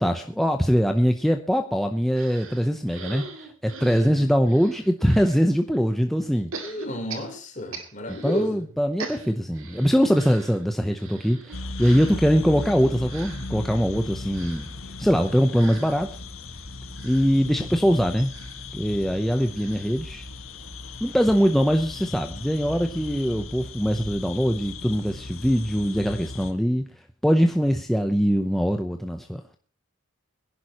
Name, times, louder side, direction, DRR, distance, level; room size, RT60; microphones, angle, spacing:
voice 1, 0.0-3.3 3.6-6.5 8.1-14.7 15.0-16.1 17.0-18.3 18.7-20.3 21.0-26.9 27.2-29.6, equal, ahead, 4 dB, 0.7 m, -22 dB
sound 1, 2.2-5.4 6.5-8.5 8.8-20.7 21.1-21.2 21.4-21.5, right 4 dB, 70° right, 2.4 m, -43 dB
voice 2, 3.9-4.4 6.6-8.7, equal, 35° left, 3 dB, 3.7 m, -33 dB
sound 2, 11.5-26.5, left 3 dB, 75° left, 1.7 m, -37 dB
22.5 x 11.0 x 3.0 m, 0.38 s
head